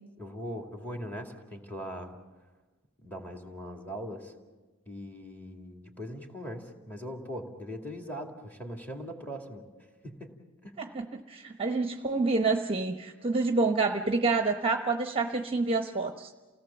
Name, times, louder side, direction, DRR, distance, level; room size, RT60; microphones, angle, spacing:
voice 1, 0.2-2.1 3.0-4.3 4.9-9.6 10.0-10.4 10.6-10.8, equal, 10° left, 2 dB, 2.5 m, -40 dB
voice 2, 10.8-16.3, right 3 dB, 25° right, 5 dB, 0.9 m, -28 dB
29.0 x 17.5 x 7.2 m, 1.3 s
head